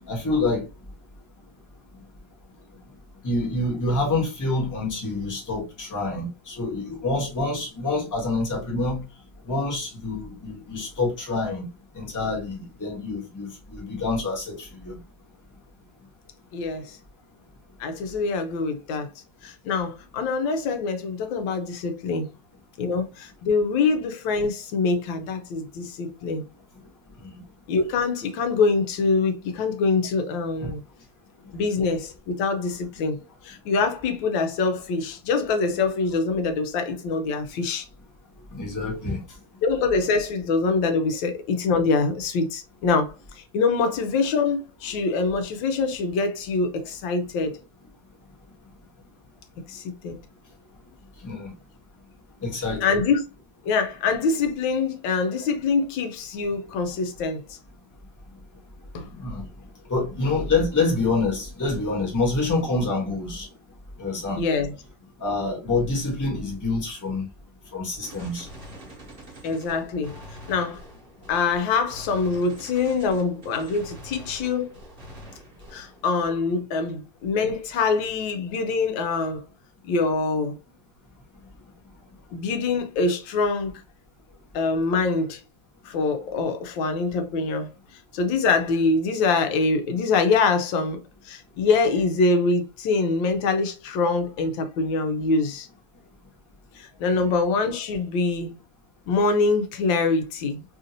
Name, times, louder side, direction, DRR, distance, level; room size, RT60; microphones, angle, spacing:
voice 1, 0.1-0.7 3.2-9.0 9.5-11.7 11.9-15.0 27.2-27.4 30.6-30.7 38.5-39.2 51.2-51.5 52.4-53.0 59.2-59.4 59.9-63.5 64.0-64.4 65.2-67.2 67.7-68.5 97.2-97.3, left 3 dB, 15° left, 0.9 m, -27 dB
voice 2, 16.5-17.0 17.8-19.1 19.4-22.3 22.8-26.4 27.7-30.8 31.5-33.2 33.4-37.8 39.6-47.6 49.7-50.2 52.8-53.2 53.6-57.6 58.9-59.1 64.4-64.7 69.4-70.2 70.5-70.8 71.3-74.8 75.7-79.4 79.9-80.6 82.3-83.7 84.5-85.4 85.8-87.7 88.1-95.7 96.8-98.5 99.1-100.6, left 4 dB, 90° left, 1.4 m, -24 dB
Gunshot gunfire, 68.0-76.0, equal, 35° right, 1.1 m, -44 dB
3.5 x 2.6 x 2.7 m
omnidirectional pair, 2.0 m